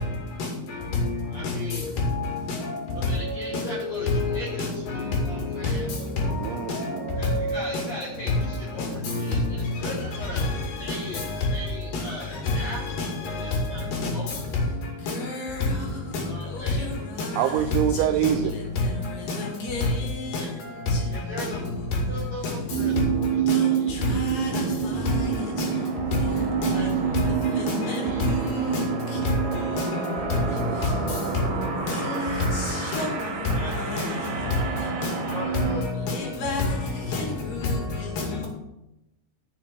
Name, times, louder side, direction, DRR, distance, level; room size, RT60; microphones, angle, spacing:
voice 1, 1.3-1.9 3.0-4.7 4.9-5.9 7.2-10.4 10.8-13.1 13.4-13.8 14.1-14.3 16.2-16.9 20.4-20.5 21.1-21.6 22.1-22.4 22.8-22.9 23.2-23.8 26.7-26.9 27.5-28.4 33.5-33.7 34.0-34.5 35.3-35.8, equal, 75° left, 1.5 m, -39 dB
voice 2, 4.1-4.4 6.4-6.5 7.1-7.8 15.3-15.5 19.7-19.9 23.5-23.6 24.4-24.6 27.9-28.0 28.2-28.6 29.8-29.9 31.9-32.0 32.9-33.1 33.7-34.0 36.1-36.2 36.4-36.6 37.1-37.2, left 2 dB, 50° left, 3.2 m, -27 dB
voice 3, 6.4-7.2 17.4-18.5 30.7-30.8, right 10 dB, 90° right, 2.6 m, -25 dB
sound 1, 22.7-35.8, right 7 dB, 70° right, 1.9 m, -28 dB
13.0 x 7.1 x 4.7 m
omnidirectional pair, 5.9 m